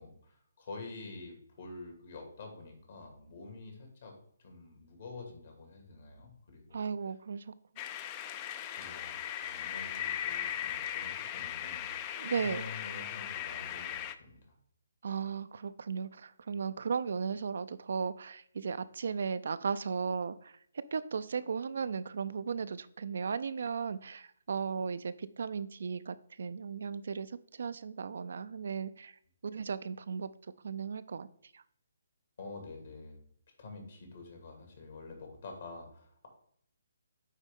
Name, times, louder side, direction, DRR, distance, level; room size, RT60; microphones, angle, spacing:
voice 1, 0.0-4.2 4.4-6.8 8.8-12.0 12.4-14.5 32.4-33.2 33.6-36.3, left 3 dB, 60° left, 2 dB, 2.2 m, -48 dB
voice 2, 6.7-7.5 12.2-12.6 15.0-20.5 20.9-29.1 29.4-30.3 30.6-31.3 31.5-31.6, right 6 dB, 65° right, 15 dB, 0.4 m, -36 dB
sound 1, 7.8-14.1, left 10 dB, 25° left, 0.4 m, -38 dB
9.2 x 3.6 x 3.6 m, 0.66 s
figure-of-eight pair, 145°, 0 cm